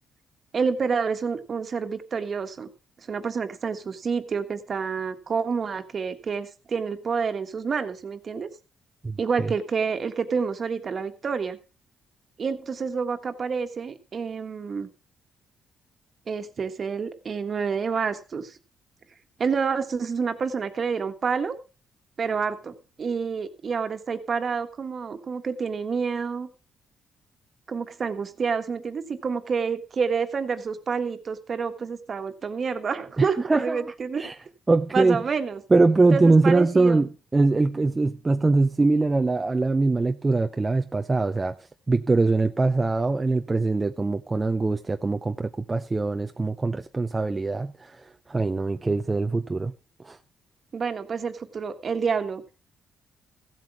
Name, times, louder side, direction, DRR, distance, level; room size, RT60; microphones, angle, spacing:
voice 1, 0.5-2.7 3.1-8.5 9.2-11.6 12.4-14.9 16.3-18.6 19.4-21.6 22.2-26.5 27.7-34.2 34.9-35.6 36.1-37.0 50.7-52.4, right 5 dB, 45° right, 1.6 m, -28 dB
voice 2, 33.2-34.4 34.7-35.2 35.7-41.6 41.9-48.0 48.3-49.7 50.0-50.2, right 3 dB, 20° right, 0.7 m, -22 dB
15.0 x 8.2 x 4.7 m
cardioid pair, 90°, 0 cm